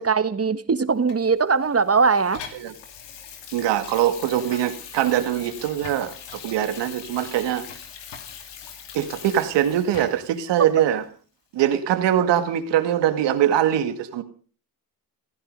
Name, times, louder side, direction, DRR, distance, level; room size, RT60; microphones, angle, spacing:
voice 1, 0.0-2.4, right 5 dB, 35° right, 12 dB, 1.6 m, -20 dB
Water tap faucet / Sink (filling or washing), 1.1-10.4 10.9-11.0, left 8 dB, 85° left, 2.5 m, -41 dB
voice 2, 3.5-7.7 8.9-11.0 11.5-14.2, right 11 dB, 85° right, 10 dB, 1.9 m, -22 dB
17.5 x 15.0 x 5.3 m, 0.41 s
supercardioid pair, 55°, 42 cm